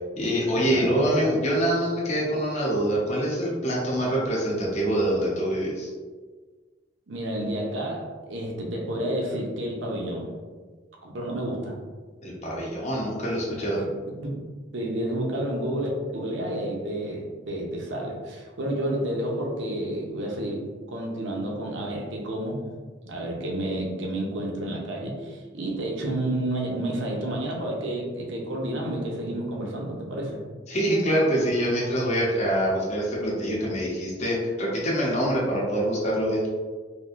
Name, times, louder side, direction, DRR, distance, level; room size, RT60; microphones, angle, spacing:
voice 1, 0.2-5.9 12.2-13.8 30.7-36.5, equal, 35° left, -5 dB, 0.8 m, -25 dB
voice 2, 0.7-1.4 7.1-10.3 11.0-11.8 13.7-14.4 14.7-22.6 23.0-30.4, right 1 dB, 70° right, -1 dB, 0.7 m, -30 dB
3.4 x 2.5 x 2.4 m, 1.4 s
head